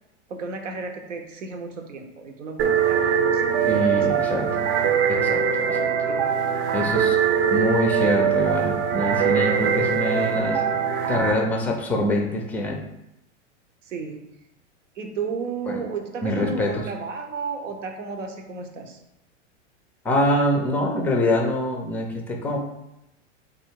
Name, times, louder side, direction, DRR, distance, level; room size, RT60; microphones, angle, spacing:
voice 1, 0.3-4.3 6.1-6.3 13.9-14.3 15.0-19.0, right 4 dB, 90° right, 4 dB, 0.8 m, -33 dB
sound 1, 2.6-11.3, right 7 dB, 60° right, 0.7 m, -22 dB
voice 2, 3.7-4.7 5.1-5.9 6.7-7.2 7.5-10.6 11.1-12.8 15.7-15.8 16.2-16.9 20.0-22.6, left 1 dB, 5° left, 2 dB, 0.4 m, -24 dB
3.4 x 2.6 x 4.5 m, 0.86 s
hypercardioid pair, 115°, 36 cm